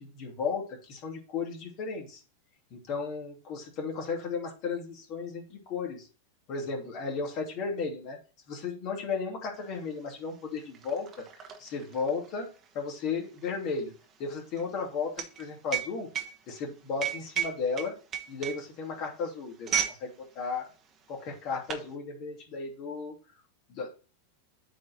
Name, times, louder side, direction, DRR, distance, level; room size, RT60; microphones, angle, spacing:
voice 1, 0.0-2.2 2.7-6.1 6.5-8.2 8.5-11.1 11.4-12.5 12.7-13.9 14.2-16.1 16.5-17.9 18.3-20.7 21.1-23.1 23.7-23.9, left 5 dB, 40° left, 1 dB, 2.8 m, -34 dB
sound 1, 9.7-9.8 10.1-20.0 20.3-20.6 21.3-21.9, right 9 dB, 30° right, 1.5 m, -35 dB
8.4 x 4.7 x 4.2 m, 0.34 s
figure-of-eight pair, 90°, 0 cm